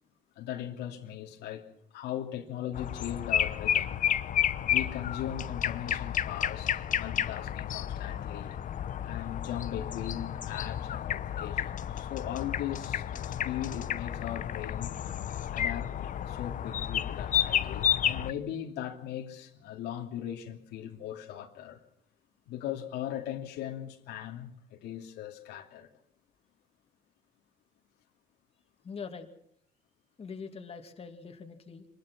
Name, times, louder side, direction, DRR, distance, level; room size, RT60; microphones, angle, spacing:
voice 1, 0.4-4.0 4.6-8.6 9.0-15.0 15.5-16.0 16.3-21.8 22.5-25.9, left 11 dB, 85° left, 2.8 m, -39 dB
sound 1, 2.7-18.3, left 10 dB, 50° left, 1.0 m, -31 dB
voice 2, 28.8-29.3 30.2-31.9, left 5 dB, 35° left, 2.5 m, -43 dB
25.0 x 20.0 x 6.1 m
cardioid pair, 110°, 17 cm